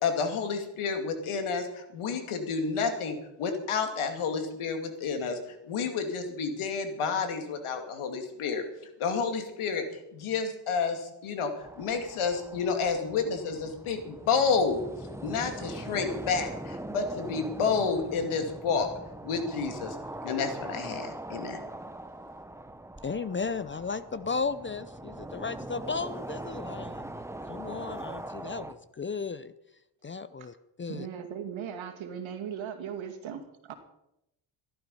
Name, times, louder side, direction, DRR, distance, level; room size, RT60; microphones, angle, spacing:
voice 1, 0.0-5.4 5.7-8.6 9.0-9.9 10.1-14.8 15.2-18.9 19.2-20.0 20.2-21.6, left 5 dB, 85° left, 6 dB, 2.5 m, -30 dB
sound 1, 11.6-28.7, right 1 dB, 5° right, 0.9 m, -41 dB
voice 2, 23.0-27.0 27.4-29.5 30.0-31.1, left 4 dB, 25° left, 14 dB, 0.5 m, -35 dB
voice 3, 30.9-33.7, right 8 dB, 70° right, 6 dB, 2.3 m, -38 dB
15.0 x 12.0 x 5.5 m, 0.83 s
cardioid pair, 110°, 48 cm